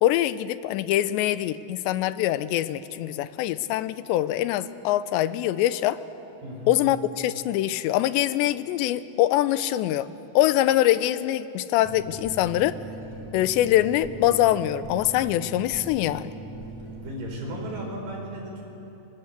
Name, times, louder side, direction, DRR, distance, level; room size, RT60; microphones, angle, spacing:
voice 1, 0.0-6.0 6.7-10.1 10.4-12.8 13.3-16.3, left 13 dB, 80° left, 14 dB, 2.9 m, -23 dB
voice 2, 6.4-6.8 16.8-18.6, right 1 dB, 50° right, 0 dB, 6.6 m, -36 dB
sound 1, 11.8-18.0, right 2 dB, 45° left, 5.1 m, -40 dB
29.5 x 23.5 x 8.2 m, 3.0 s
omnidirectional pair, 5.1 m